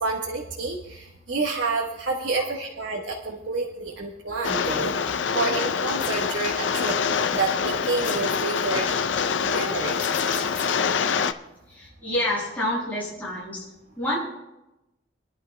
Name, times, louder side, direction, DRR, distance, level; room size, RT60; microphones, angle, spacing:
voice 1, 0.0-1.0 1.3-4.9 5.3-6.9 7.3-8.8 9.4-10.0, right 3 dB, 85° right, -1 dB, 1.3 m, -28 dB
Rain, 4.4-11.3, left 6 dB, 90° left, 0.5 m, -25 dB
sound 1, 6.0-6.3 8.0-8.4 10.0-10.9, left 4 dB, 40° left, 2.0 m, -37 dB
voice 2, 11.7-13.7 14.0-14.2, left 1 dB, 10° left, -8 dB, 5.8 m, -28 dB
28.0 x 11.0 x 2.2 m, 0.96 s
head